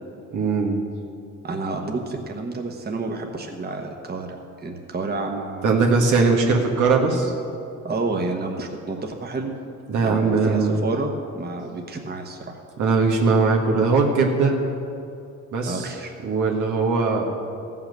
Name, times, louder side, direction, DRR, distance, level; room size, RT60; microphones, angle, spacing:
voice 1, 0.3-0.8 5.6-7.3 9.9-10.8 12.8-14.5 15.5-15.9 16.2-17.3, right 4 dB, 80° right, 0 dB, 1.7 m, -20 dB
voice 2, 1.4-5.8 7.8-9.5 10.0-12.6 15.7-16.1, right 3 dB, 30° right, 3 dB, 1.2 m, -29 dB
14.5 x 5.8 x 6.8 m, 2.6 s
cardioid pair, 90°, 30 cm